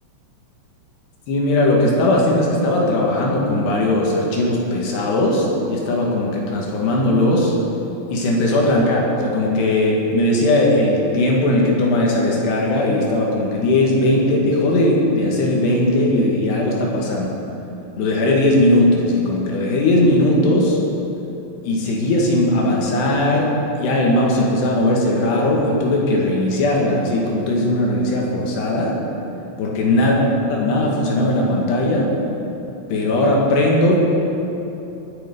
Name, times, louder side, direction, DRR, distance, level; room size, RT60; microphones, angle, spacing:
voice 1, 1.3-7.5 8.1-17.4 18.0-20.8 21.6-29.0 29.6-30.2 30.5-32.1 32.9-34.0, left 1 dB, 65° left, -2 dB, 3.5 m, -18 dB
22.0 x 7.6 x 5.3 m, 3.0 s
omnidirectional pair, 5.8 m